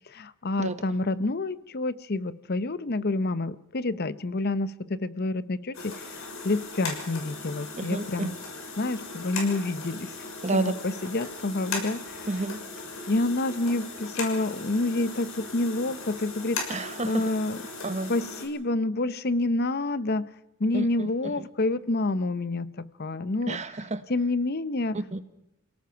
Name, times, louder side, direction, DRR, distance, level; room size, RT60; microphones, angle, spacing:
voice 1, 0.1-8.4 8.8-10.1 10.5-12.3 13.1-16.8 17.0-17.6 18.1-20.3 20.6-23.6 24.1-25.0, left 2 dB, 50° left, 16 dB, 0.8 m, -28 dB
sound 1, 5.7-18.5, left 3 dB, 85° left, 6.1 m, -38 dB
voice 2, 7.8-8.3 10.4-10.7 12.3-12.6 16.7-17.5 17.8-18.1 20.7-21.5 23.5-24.0 24.9-25.2, right 2 dB, 35° right, 12 dB, 1.3 m, -31 dB
28.0 x 18.0 x 5.8 m, 0.84 s
head